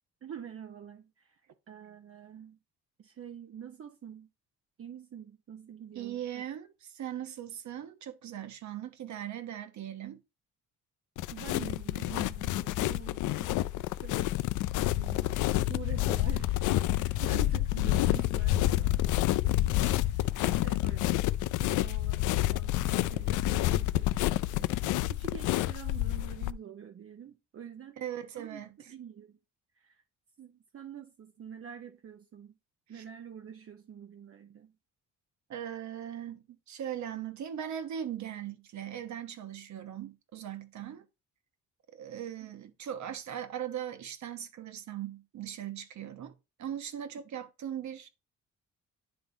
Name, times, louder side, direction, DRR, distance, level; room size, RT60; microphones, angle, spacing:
voice 1, 0.2-2.6 3.0-4.3 4.8-6.4 11.3-14.4 14.8-15.4 15.7-19.1 19.4-21.2 21.5-24.2 24.5-28.0 28.3-29.4 29.8-30.0 30.4-32.6 32.9-34.7 42.4-42.7, right 8 dB, 50° right, 1.0 m, -47 dB
voice 2, 5.9-10.2 17.2-17.3 28.0-28.7 32.9-33.0 35.5-41.1 41.9-46.3 46.6-48.1, right 10 dB, 70° right, 1.3 m, -39 dB
sound 1, 11.2-26.5, left 15 dB, 80° left, 0.4 m, -28 dB
10.0 x 3.6 x 4.0 m
cardioid pair, 90°, 30 cm